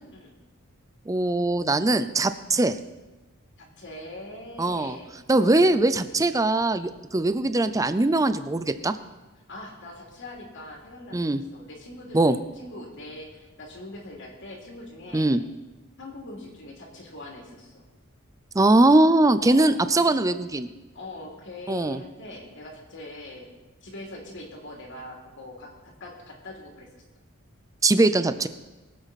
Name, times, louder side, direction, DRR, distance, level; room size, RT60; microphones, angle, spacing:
voice 1, 1.1-2.8 4.6-5.0 5.3-9.0 11.1-11.4 12.1-12.4 15.1-15.4 18.5-20.7 21.7-22.0 27.8-28.5, right 2 dB, 15° right, 12 dB, 0.5 m, -21 dB
voice 2, 3.6-5.1 9.5-15.3 16.0-17.9 19.4-19.7 20.9-23.5 23.8-26.9, left 1 dB, 60° left, -1 dB, 2.9 m, -42 dB
22.5 x 8.0 x 4.2 m, 1.1 s
head